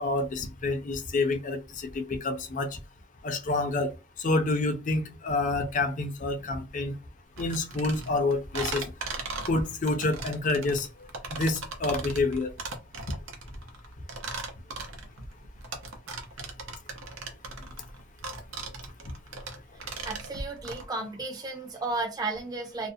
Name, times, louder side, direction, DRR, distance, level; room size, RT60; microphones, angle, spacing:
voice 1, 0.0-2.8 3.2-3.9 4.2-7.0 7.4-8.8 9.5-10.9 11.3-12.5, left 2 dB, 40° left, 0.4 m, -28 dB
sound 1, 7.4-20.8, right 3 dB, 90° right, 0.6 m, -38 dB
voice 2, 20.0-22.9, right 3 dB, 20° right, 0.4 m, -33 dB
2.4 x 2.0 x 2.6 m
head